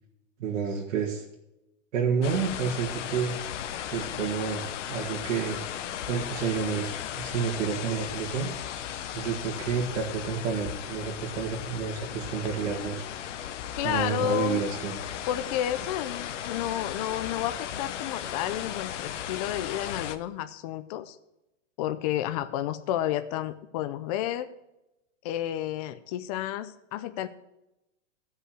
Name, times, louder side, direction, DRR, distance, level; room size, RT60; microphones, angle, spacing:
voice 1, 0.4-1.2 1.9-3.4 3.9-5.6 6.1-8.8 9.1-13.1 13.8-15.0, right 6 dB, 70° right, -2 dB, 2.2 m, -30 dB
sound 1, 2.2-20.2, left 10 dB, 70° left, 1.0 m, -36 dB
voice 2, 13.8-14.6 15.3-21.2 21.8-24.5 25.2-27.3, left 12 dB, 30° left, 10 dB, 0.5 m, -31 dB
13.0 x 5.6 x 7.6 m, 0.91 s
supercardioid pair, 160°, 38 cm